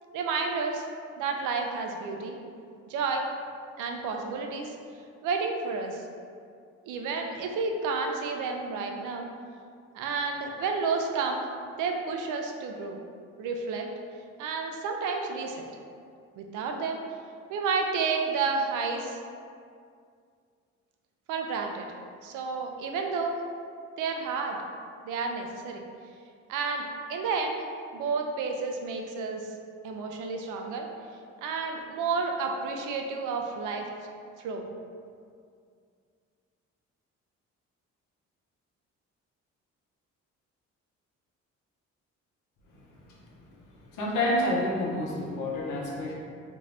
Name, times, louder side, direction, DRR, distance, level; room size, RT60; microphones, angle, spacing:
voice 1, 0.1-0.8 1.2-2.4 2.9-3.3 3.8-4.8 5.2-6.0 6.8-9.3 9.9-11.4 11.8-13.0 13.4-13.9 14.4-15.7 16.4-17.0 17.5-19.2 21.3-21.9 22.2-23.4 24.0-24.6 25.1-25.8 26.5-27.6 27.9-29.5 29.8-30.9 31.4-33.9 34.4-34.7, right 4 dB, 85° right, 2 dB, 0.5 m, -31 dB
voice 2, 43.9-46.1, left 1 dB, 90° left, -3 dB, 0.7 m, -28 dB
2.6 x 2.5 x 3.2 m, 2.2 s
cardioid pair, 90°, 30 cm